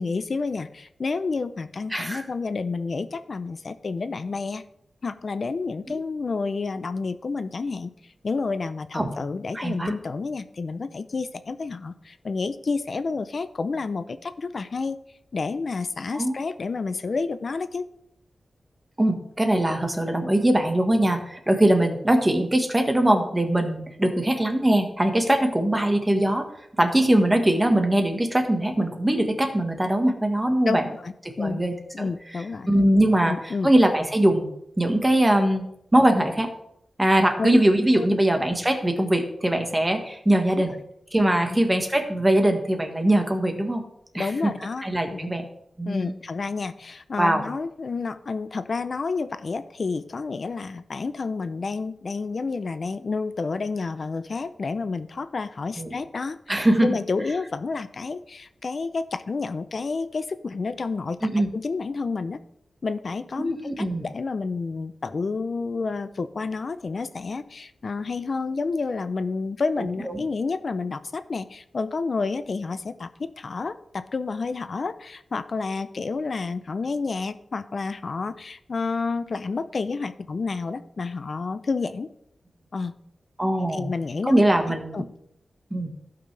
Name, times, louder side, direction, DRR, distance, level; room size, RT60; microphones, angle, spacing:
voice 1, 0.0-4.7 5.0-7.9 8.2-15.0 15.3-17.9 30.7-30.8 31.0-31.6 31.9-32.7 33.2-33.7 37.4-37.6 38.0-38.1 41.5-41.6 44.1-44.8 45.1-45.3 45.9-56.4 56.8-61.2 61.5-62.4 62.8-82.1 82.7-82.9 83.7-85.0, left 4 dB, 50° left, 12 dB, 0.6 m, -30 dB
voice 2, 1.9-2.2 5.9-6.0 8.9-9.1 9.5-9.9 16.1-16.3 19.0-26.5 26.8-30.9 31.4-32.1 32.7-34.5 34.8-35.6 35.9-36.5 37.0-40.7 41.1-43.8 44.1-44.5 44.8-45.4 45.8-46.1 47.2-47.5 55.8-55.9 56.5-57.0 61.2-61.5 63.4-64.0 70.0-70.2 83.4-83.9 84.2-85.0 85.7-85.9, right 1 dB, 15° right, 5 dB, 1.4 m, -21 dB
16.0 x 5.8 x 3.3 m, 0.76 s
wide cardioid pair, 120°, 0 cm